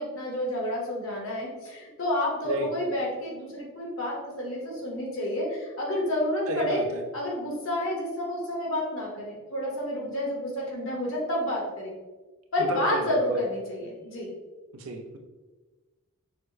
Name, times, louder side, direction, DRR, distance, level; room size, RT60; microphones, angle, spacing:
voice 1, 0.0-6.9 7.1-11.9 12.5-14.3, left 1 dB, 65° left, -3 dB, 1.3 m, -30 dB
voice 2, 6.5-7.0 12.6-13.4 14.7-15.2, right 1 dB, 80° right, 4 dB, 0.6 m, -32 dB
6.3 x 2.1 x 3.2 m, 1.2 s
head